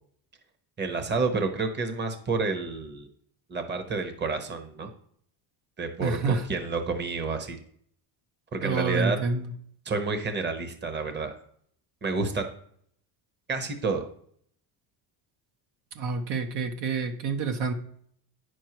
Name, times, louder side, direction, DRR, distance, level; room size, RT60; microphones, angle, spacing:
voice 1, 0.8-3.1 3.5-4.9 5.8-7.6 8.5-9.2 9.8-11.3 12.0-12.4 13.5-14.1, right 4 dB, 25° right, 8 dB, 1.0 m, -29 dB
voice 2, 6.0-6.4 8.6-9.5 16.0-17.7, right 4 dB, 65° right, 6 dB, 1.0 m, -28 dB
9.1 x 6.3 x 3.0 m, 0.63 s
cardioid pair, 105°, 44 cm